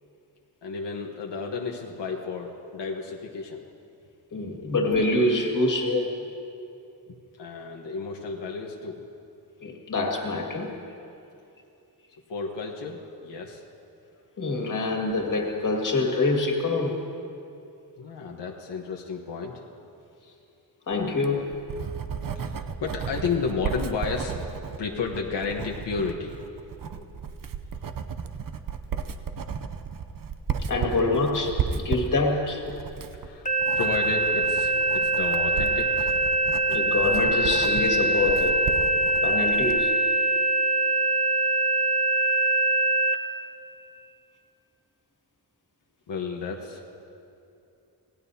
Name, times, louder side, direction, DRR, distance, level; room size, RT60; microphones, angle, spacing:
voice 1, 0.6-3.6 7.4-9.1 12.3-13.6 18.0-19.6 22.3-24.4 24.8-26.3 29.3-29.5 33.1-36.1 46.1-46.9, left 5 dB, 90° left, 0 dB, 1.3 m, -32 dB
voice 2, 4.3-6.1 9.6-10.7 14.4-17.1 20.9-21.5 30.7-32.6 36.7-38.6 39.2-39.9, left 2 dB, 50° left, 0 dB, 2.0 m, -25 dB
Writing, 21.1-39.8, right 6 dB, 55° right, 0.7 m, -34 dB
sound 1, 33.5-43.2, right 2 dB, 20° left, 0.8 m, -23 dB
26.5 x 18.0 x 2.8 m, 2.6 s
wide cardioid pair, 180°, 41 cm